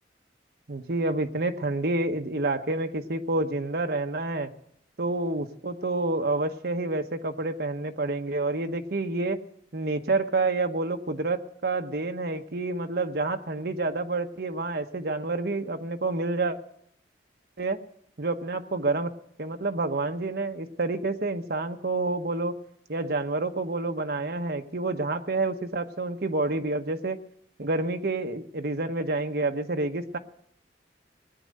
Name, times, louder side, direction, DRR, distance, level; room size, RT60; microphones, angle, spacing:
voice 1, 0.7-4.5 5.0-9.4 9.7-16.6 17.6-17.8 18.2-19.1 19.4-22.6 22.9-27.2 27.6-30.2, right 2 dB, 65° right, 6 dB, 1.0 m, -28 dB
19.0 x 9.4 x 6.6 m, 0.71 s
head